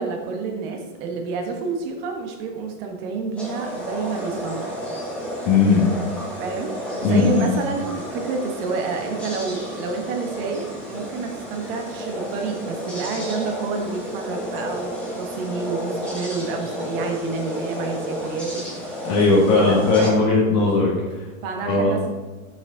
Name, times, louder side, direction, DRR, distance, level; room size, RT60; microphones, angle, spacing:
voice 1, 0.0-4.7 6.4-6.7 7.0-18.7 19.5-20.3 21.4-22.1, right 4 dB, 45° right, 3 dB, 1.3 m, -29 dB
sound 1, 3.4-20.1, equal, 5° left, 2.1 m, -32 dB
voice 2, 5.4-5.9 7.0-7.5 19.0-20.9 21.1-21.2 21.6-21.9, left 3 dB, 40° left, -5 dB, 1.6 m, -18 dB
6.3 x 6.1 x 3.9 m, 1.3 s
supercardioid pair, 150°, 39 cm